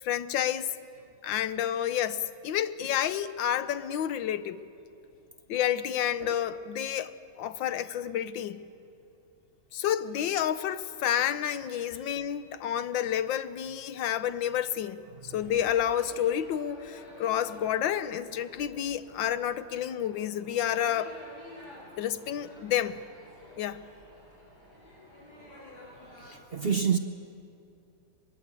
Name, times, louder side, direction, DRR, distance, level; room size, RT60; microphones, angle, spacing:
voice 1, 0.0-0.7 1.2-4.6 5.5-8.6 9.7-21.1 22.0-23.0 23.6-23.8, left 10 dB, 85° left, 1.5 m, -30 dB
sound 1, 15.3-26.4, equal, 55° left, 8.6 m, -51 dB
voice 2, 26.2-27.0, right 7 dB, 45° right, 0.7 m, -28 dB
23.5 x 20.5 x 8.3 m
omnidirectional pair, 2.0 m